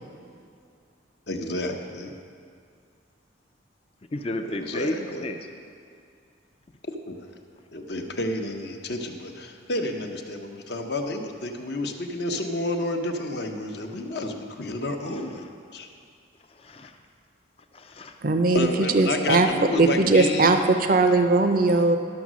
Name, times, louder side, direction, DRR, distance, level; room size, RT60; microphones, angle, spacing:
voice 1, 1.3-2.1 4.5-5.3 6.8-7.3 7.7-15.5 15.7-15.9 18.5-20.6, left 2 dB, 55° left, 4 dB, 0.8 m, -30 dB
voice 2, 4.1-5.4 16.6-16.9 17.7-18.1, left 1 dB, 30° left, 4 dB, 0.4 m, -32 dB
voice 3, 18.2-19.5 19.8-22.0, right 3 dB, 45° right, 6 dB, 0.5 m, -20 dB
11.5 x 6.4 x 6.2 m, 2.3 s
head